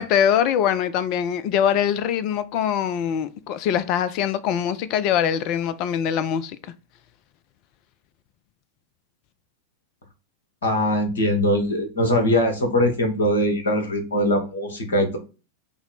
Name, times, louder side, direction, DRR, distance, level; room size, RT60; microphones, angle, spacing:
voice 1, 0.0-6.6, left 9 dB, 40° left, 0.4 m, -23 dB
voice 2, 10.6-15.2, left 1 dB, 65° left, 1.3 m, -21 dB
5.8 x 2.1 x 3.8 m
figure-of-eight pair, 90°, 0 cm